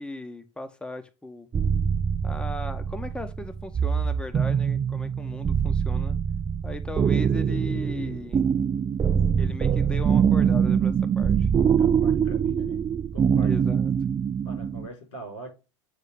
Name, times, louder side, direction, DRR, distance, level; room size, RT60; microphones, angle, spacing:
voice 1, 0.0-1.5 2.2-6.2 6.6-8.4 9.4-11.5 13.4-13.9, left 2 dB, 5° left, 1.0 m, -37 dB
sound 1, 1.5-14.9, right 7 dB, 20° right, 0.5 m, -24 dB
voice 2, 11.8-12.8 13.1-13.7 14.4-15.5, right 1 dB, 75° left, 4.4 m, -42 dB
8.4 x 3.7 x 3.5 m
hypercardioid pair, 90°, 16 cm